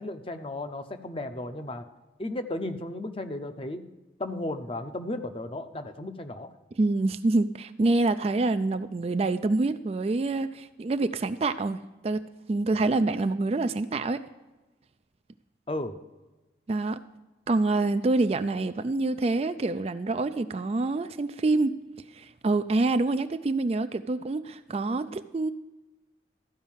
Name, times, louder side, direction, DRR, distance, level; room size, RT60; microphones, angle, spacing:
voice 1, 0.0-1.9 2.2-3.8 4.2-6.5 15.7-16.0, left 1 dB, 30° left, 8 dB, 0.7 m, -34 dB
voice 2, 6.8-14.2 16.7-17.0 17.5-21.8 22.1-25.5, right 2 dB, 35° right, 11 dB, 0.3 m, -26 dB
13.5 x 5.3 x 7.3 m, 1.1 s
head